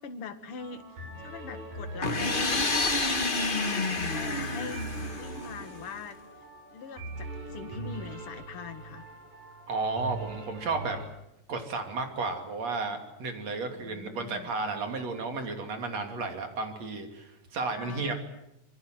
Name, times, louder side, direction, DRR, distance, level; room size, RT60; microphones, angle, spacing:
voice 1, 0.0-2.6 3.2-6.2 6.7-9.0 13.7-14.5 17.8-18.1, left 6 dB, 50° left, 9 dB, 2.5 m, -42 dB
sound 1, 0.6-11.1, right 2 dB, 80° right, 8.2 m, -41 dB
sound 2, 2.0-5.8, left 3 dB, 25° left, 1.3 m, -29 dB
voice 2, 9.7-11.0 11.5-18.1, right 3 dB, 60° right, 5 dB, 4.1 m, -33 dB
27.0 x 23.5 x 7.8 m, 0.86 s
omnidirectional pair, 3.3 m